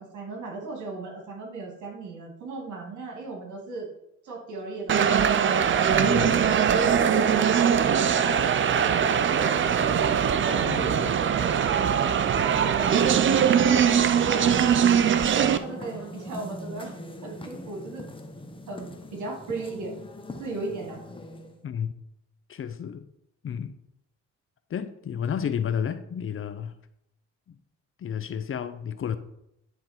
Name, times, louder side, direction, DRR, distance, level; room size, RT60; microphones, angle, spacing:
voice 1, 0.0-3.9 4.2-6.3 6.7-10.1 10.5-12.9 13.4-14.5 15.3-16.9 17.2-18.1 18.7-19.9 20.4-21.0, right 3 dB, 75° right, 2.6 m, -37 dB
sound 1, 4.9-15.6, right 8 dB, 40° right, 0.5 m, -21 dB
voice 2, 5.9-6.4 10.6-11.0 21.6-21.9 22.5-23.1 23.4-23.7 24.7-26.7 28.0-29.2, left 8 dB, 45° left, 0.6 m, -31 dB
sound 2, 12.7-21.6, left 1 dB, 15° left, 1.0 m, -41 dB
10.5 x 3.7 x 4.5 m
cardioid pair, 90°, 30 cm